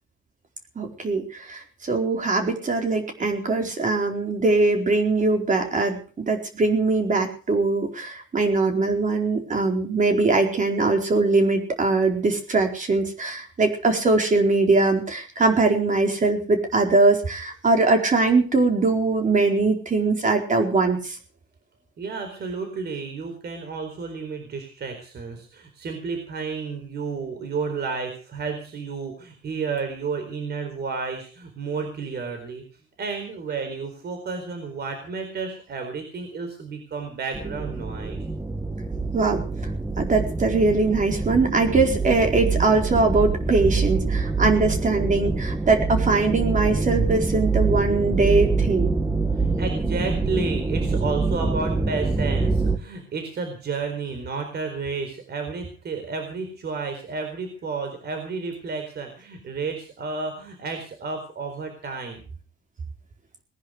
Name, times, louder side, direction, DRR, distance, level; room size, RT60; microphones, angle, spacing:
voice 1, 0.8-21.2 39.1-39.4 40.0-48.9, right 3 dB, 40° right, 3 dB, 4.4 m, -21 dB
voice 2, 22.0-32.6 33.0-38.3 49.4-62.2, right 4 dB, 55° right, 6 dB, 4.4 m, -31 dB
sound 1, 37.3-52.8, right 3 dB, 10° right, 1.5 m, -25 dB
19.5 x 10.5 x 6.4 m, 0.40 s
cardioid pair, 90°, 20 cm